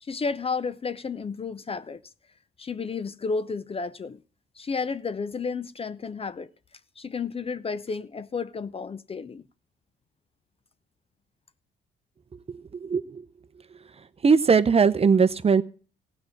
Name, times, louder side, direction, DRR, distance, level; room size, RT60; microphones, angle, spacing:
voice 1, 0.0-2.0 2.6-4.2 4.6-6.5 7.0-9.4, left 5 dB, 30° left, 0.5 m, -32 dB
voice 2, 12.5-13.2 14.2-15.6, right 5 dB, 30° right, 0.7 m, -20 dB
15.5 x 5.3 x 8.2 m
cardioid pair, 90°, 20 cm